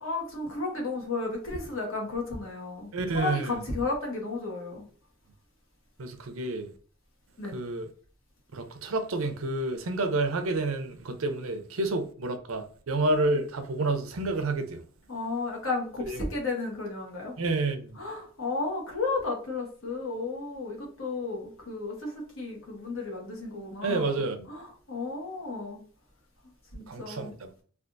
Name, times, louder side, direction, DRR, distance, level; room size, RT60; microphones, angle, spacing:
voice 1, 0.0-4.8 7.4-7.6 13.0-13.1 15.1-17.3 18.0-25.8 26.7-27.3, left 3 dB, 80° left, 1.1 m, -33 dB
voice 2, 2.9-3.6 6.0-6.7 7.5-7.9 8.5-14.8 16.1-16.2 17.4-18.0 23.8-24.5 26.9-27.5, right 2 dB, 90° right, 0.6 m, -29 dB
3.4 x 2.4 x 2.5 m
head